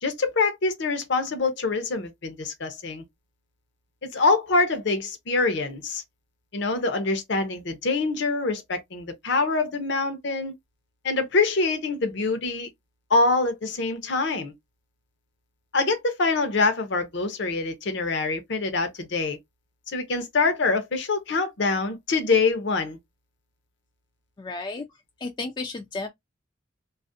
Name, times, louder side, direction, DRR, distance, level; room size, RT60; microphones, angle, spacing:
voice 1, 0.0-3.0 4.1-6.0 6.5-10.5 11.0-12.7 13.1-14.5 15.7-19.4 19.9-23.0, left 3 dB, 60° left, 0.6 m, -25 dB
voice 2, 24.4-24.9 25.2-26.1, left 3 dB, 25° left, 0.3 m, -33 dB
2.4 x 2.1 x 2.5 m
head